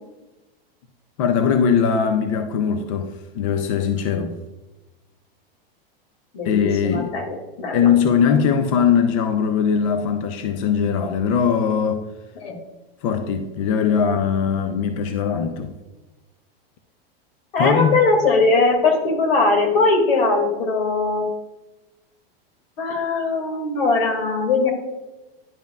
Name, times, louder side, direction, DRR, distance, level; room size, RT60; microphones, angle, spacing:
voice 1, 1.2-4.3 6.4-7.1 7.7-12.0 13.0-15.7 17.6-18.0, left 7 dB, 35° left, 7 dB, 0.4 m, -20 dB
voice 2, 6.3-7.9 12.4-12.5 17.5-21.2 22.8-24.7, left 3 dB, 75° left, 3 dB, 2.2 m, -20 dB
10.5 x 5.3 x 2.3 m, 1.1 s
supercardioid pair, 165°, 30 cm